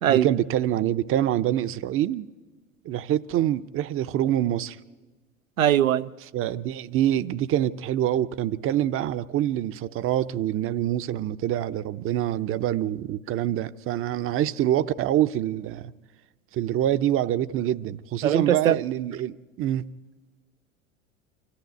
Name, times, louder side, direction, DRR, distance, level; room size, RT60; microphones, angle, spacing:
voice 1, 0.0-2.3 2.8-4.8 6.3-15.9 16.5-19.9, right 12 dB, 35° right, 0.7 m, -25 dB
voice 2, 5.6-6.1 18.2-18.8, right 11 dB, 85° right, 0.6 m, -20 dB
25.0 x 14.5 x 9.3 m
hypercardioid pair, 85°, 39 cm